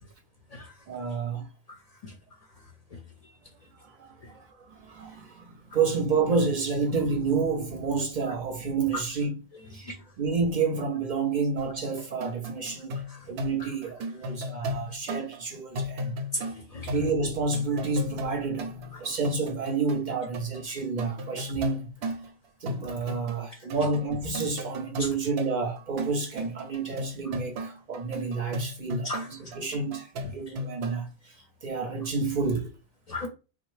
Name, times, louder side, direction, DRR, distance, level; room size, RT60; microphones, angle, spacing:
voice 1, 0.9-1.5 3.8-9.4 9.7-13.0 13.3-16.2 16.9-21.9 22.6-31.3 31.6-32.7, right 4 dB, 55° right, 0.6 m, -29 dB
sound 1, 11.6-20.1 20.3-22.3 22.6-23.4 23.7-31.1, left 1 dB, 85° right, 0.8 m, -36 dB
voice 2, 16.3-16.9 18.9-19.0 25.0-25.1 29.0-29.3 33.1-33.3, left 1 dB, 50° left, 0.5 m, -35 dB
3.6 x 2.1 x 3.1 m
omnidirectional pair, 1.1 m